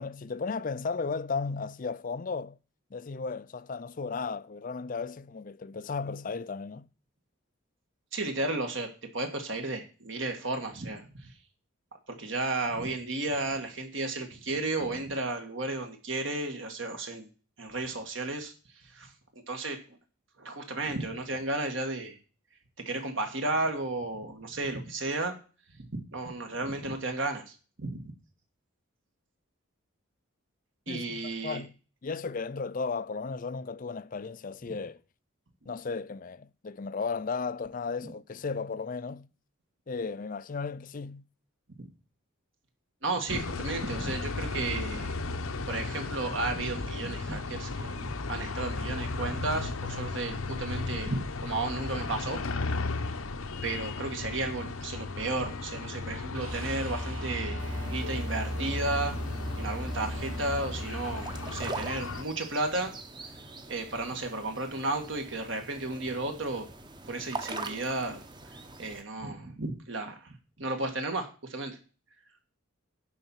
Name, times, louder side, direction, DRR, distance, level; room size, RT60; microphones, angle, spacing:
voice 1, 0.0-2.6 2.9-6.9 30.9-31.7 32.0-35.0 35.7-39.3 39.9-41.2, left 4 dB, 40° left, 0.4 m, -35 dB
voice 2, 8.1-8.9 9.1-11.3 12.2-17.3 17.6-18.5 18.8-19.1 19.5-20.0 20.4-22.2 22.8-25.3 25.8-28.0 30.9-31.6 38.0-38.1 41.8-41.9 43.0-45.1 45.7-52.4 52.7-53.1 53.6-57.6 57.9-59.2 59.6-62.9 63.7-66.7 67.1-68.2 68.8-71.8, right 2 dB, 60° right, 1.8 m, -33 dB
sound 1, 43.3-62.2, left 3 dB, 80° left, 0.9 m, -36 dB
sound 2, 56.3-62.3 64.8-64.9, equal, 80° right, 3.7 m, -37 dB
sound 3, 57.6-69.0, right 3 dB, 20° right, 0.9 m, -43 dB
11.0 x 4.2 x 7.2 m
head